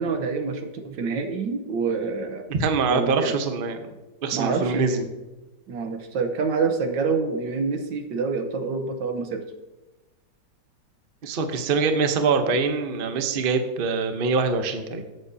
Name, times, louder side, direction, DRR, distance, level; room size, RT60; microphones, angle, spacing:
voice 1, 0.0-2.4 2.8-3.4 4.3-5.0 5.7-9.4, right 4 dB, 85° right, 6 dB, 1.7 m, -27 dB
voice 2, 2.5-3.9 4.2-5.0 11.2-15.0, right 4 dB, 45° right, 7 dB, 0.7 m, -24 dB
14.0 x 7.8 x 2.7 m, 1.1 s
omnidirectional pair, 2.0 m